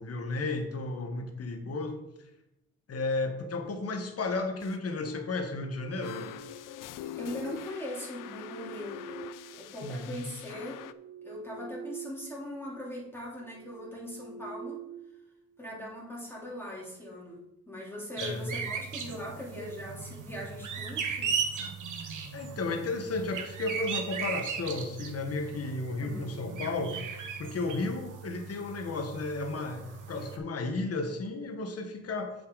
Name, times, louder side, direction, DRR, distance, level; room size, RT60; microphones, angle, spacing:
voice 1, 0.0-2.0 2.9-6.4 9.8-10.2 18.2-18.5 22.3-32.3, left 3 dB, 50° left, 5 dB, 1.4 m, -33 dB
sound 1, 4.6-4.8 5.0-5.3 6.0-10.9, left 11 dB, 75° left, 0.5 m, -43 dB
sound 2, 5.4-6.9 7.9-10.0 10.5-12.3 12.6-12.8 13.3-15.7, right 6 dB, 50° right, 0.9 m, -46 dB
voice 2, 7.2-9.0 9.5-10.8 11.2-14.8 15.6-21.5 26.0-26.3, left 1 dB, 5° left, -5 dB, 3.3 m, -40 dB
sound 3, 18.2-30.4, right 6 dB, 70° right, 1.5 m, -37 dB
8.3 x 6.8 x 4.0 m, 0.88 s
cardioid pair, 100°, 32 cm